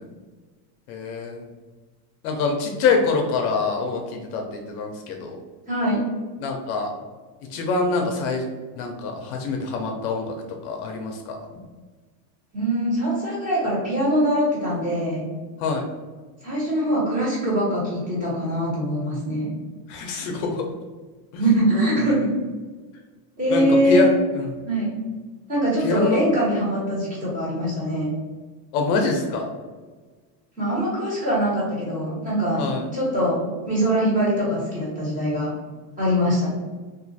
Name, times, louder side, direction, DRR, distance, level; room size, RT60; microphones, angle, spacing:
voice 1, 0.9-1.4 2.2-5.4 6.4-6.9 7.5-8.5 8.8-10.3 10.6-11.4 15.6-15.8 19.9-20.7 21.3-21.4 23.5-24.5 25.8-26.2 28.7-29.5 32.6-32.9, left 4 dB, 60° left, 2 dB, 0.7 m, -25 dB
voice 2, 5.7-6.0 12.5-15.2 16.4-19.5 21.4-22.3 23.4-24.1 24.6-24.9 25.5-28.1 30.6-33.4 33.7-35.5 36.0-36.5, equal, 15° right, -7 dB, 1.2 m, -23 dB
2.6 x 2.4 x 3.9 m, 1.4 s
supercardioid pair, 160°, 50 cm